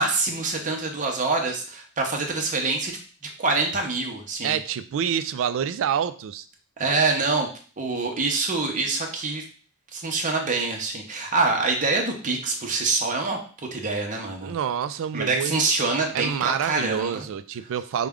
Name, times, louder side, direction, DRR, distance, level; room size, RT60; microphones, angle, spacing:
voice 1, 0.0-2.9 3.4-4.5 6.8-7.5 7.8-9.4 9.9-13.4 13.7-14.5 15.1-17.2, right 3 dB, 35° right, 1 dB, 0.7 m, -25 dB
voice 2, 4.4-6.5 14.4-15.5 16.1-18.1, right 8 dB, 60° right, 12 dB, 0.3 m, -27 dB
4.8 x 2.2 x 3.5 m, 0.41 s
head